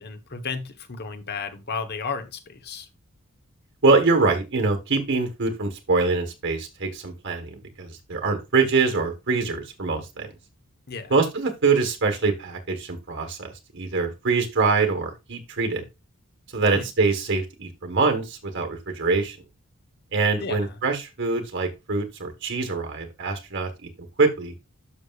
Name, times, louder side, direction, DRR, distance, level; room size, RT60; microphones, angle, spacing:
voice 1, 0.0-2.9 10.9-11.1 16.7-16.9 20.4-20.8, left 5 dB, 45° left, 1.2 m, -33 dB
voice 2, 3.8-10.3 11.1-15.8 16.5-19.4 20.1-24.5, right 4 dB, 55° right, 1.5 m, -24 dB
11.5 x 6.5 x 2.5 m
head